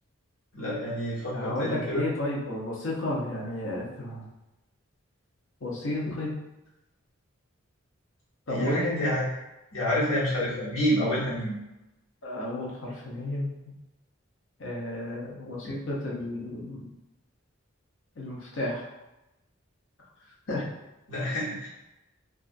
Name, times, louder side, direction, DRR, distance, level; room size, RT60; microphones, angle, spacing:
voice 1, 0.5-2.1 8.5-9.3 9.7-11.5 20.5-20.6 21.1-21.7, equal, 85° left, -8 dB, 1.3 m, -28 dB
voice 2, 1.3-4.3 5.6-6.4 8.5-9.1 11.2-11.3 12.2-13.5 14.6-16.9 18.2-18.8 20.5-20.7, left 1 dB, 65° left, -3 dB, 0.7 m, -32 dB
2.9 x 2.4 x 2.5 m, 0.97 s
head